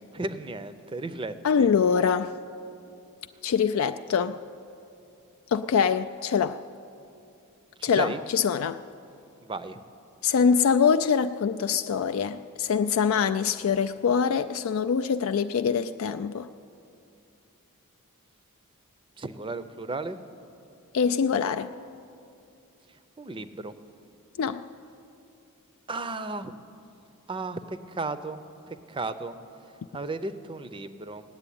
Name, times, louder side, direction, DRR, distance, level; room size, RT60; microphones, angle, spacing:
voice 1, 0.1-1.7 7.8-8.2 9.4-9.8 19.2-20.2 23.2-23.7 25.9-26.5 27.3-28.4 28.7-29.3 29.9-31.2, right 3 dB, 25° right, 0.5 m, -34 dB
voice 2, 1.4-2.3 3.4-4.4 5.5-6.6 7.8-8.8 10.2-16.5 20.9-21.7 24.4-24.6, left 6 dB, 65° left, 0.3 m, -24 dB
17.0 x 7.7 x 10.0 m
head